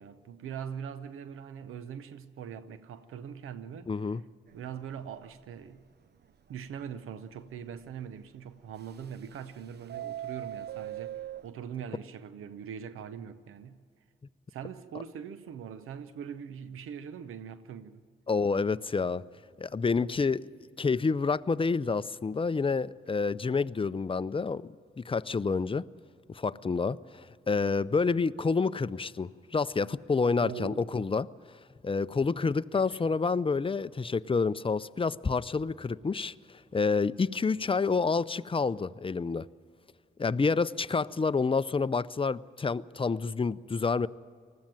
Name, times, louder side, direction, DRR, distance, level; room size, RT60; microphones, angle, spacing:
voice 1, 0.0-4.2 4.5-5.9 6.5-13.8 14.5-18.0 30.4-30.9 32.7-33.0, right 8 dB, 85° right, 0.7 m, -42 dB
voice 2, 3.9-4.2 18.3-19.2 19.6-20.5 20.8-24.6 25.0-25.9 26.3-31.3 31.8-36.3 36.7-39.5 40.2-44.1, left 4 dB, 25° left, 0.5 m, -28 dB
Subway metro underground, 4.5-4.8 5.2-5.3 5.6-5.7 6.2-6.3 8.8-9.5 9.8-11.5, right 12 dB, 55° right, 0.6 m, -39 dB
19.5 x 14.5 x 9.1 m
cardioid pair, 50°, 21 cm